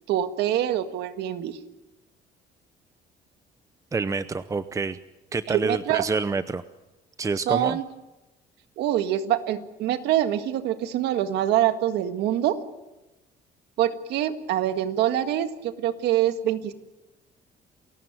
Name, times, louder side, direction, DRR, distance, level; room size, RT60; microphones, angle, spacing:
voice 1, 0.1-1.6 5.5-6.0 7.4-7.8 8.8-12.6 13.8-16.7, right 11 dB, 85° right, 9 dB, 1.7 m, -25 dB
voice 2, 3.9-5.0 5.3-6.6 7.2-7.8, right 4 dB, 20° right, 13 dB, 0.7 m, -27 dB
28.5 x 16.0 x 9.0 m, 1.0 s
cardioid pair, 110°, 17 cm